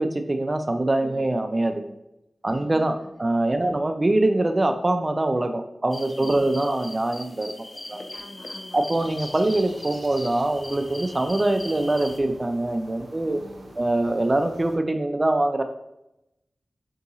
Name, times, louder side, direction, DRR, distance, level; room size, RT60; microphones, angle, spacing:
voice 1, 0.0-1.9 2.4-8.0 8.7-13.4 13.8-15.6, right 2 dB, 30° right, 7 dB, 0.3 m, -24 dB
voice 2, 2.5-3.1 3.5-3.8 6.1-6.5 7.8-8.8 13.2-13.7, left 1 dB, 80° left, -6 dB, 1.4 m, -46 dB
sound 1, 5.9-12.2, left 1 dB, 40° left, 0.4 m, -40 dB
sound 2, 8.9-14.8, right 1 dB, 85° right, 0.6 m, -46 dB
3.7 x 2.7 x 2.7 m, 0.86 s
wide cardioid pair, 65°, 0 cm